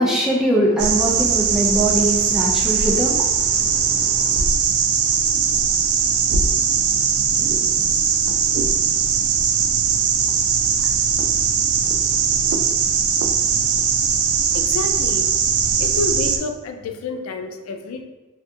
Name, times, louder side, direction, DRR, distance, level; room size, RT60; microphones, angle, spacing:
voice 1, 0.0-4.4, right 1 dB, ahead, -4 dB, 0.4 m, -22 dB
sound 1, 0.8-16.4, right 6 dB, 80° right, 0.3 m, -20 dB
voice 2, 14.4-15.3 15.8-18.0, left 3 dB, 75° left, 5 dB, 0.3 m, -29 dB
2.7 x 2.5 x 2.2 m, 1.2 s
head